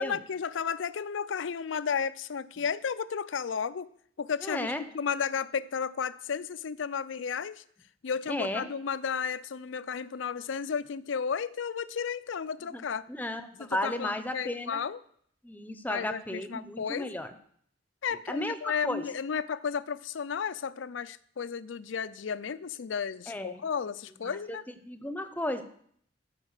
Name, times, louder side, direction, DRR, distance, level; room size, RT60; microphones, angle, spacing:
voice 1, 0.0-3.9 4.2-7.6 8.0-13.1 13.6-15.0 15.9-17.2 18.0-24.6, left 6 dB, 85° left, 17 dB, 0.5 m, -33 dB
voice 2, 4.4-4.8 8.3-8.7 12.7-14.8 15.4-17.3 18.3-18.6 18.8-19.1 23.3-23.6 24.2-24.6 24.8-25.6, left 1 dB, 10° left, 9 dB, 0.8 m, -34 dB
14.5 x 5.3 x 6.5 m, 0.64 s
head